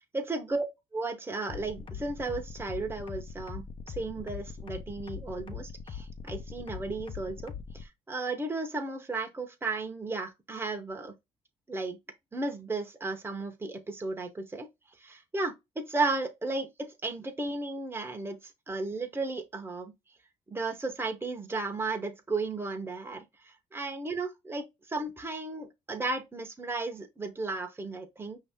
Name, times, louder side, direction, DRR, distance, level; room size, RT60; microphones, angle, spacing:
voice 1, 0.1-0.6 0.9-11.1 11.7-12.0 12.3-14.7 15.0-18.4 18.7-19.9 20.5-28.4, right 3 dB, 15° right, 0.9 m, -34 dB
sound 1, 1.5-7.8, left 7 dB, 40° left, 0.8 m, -41 dB
5.3 x 2.8 x 3.5 m
cardioid pair, 85°, 14 cm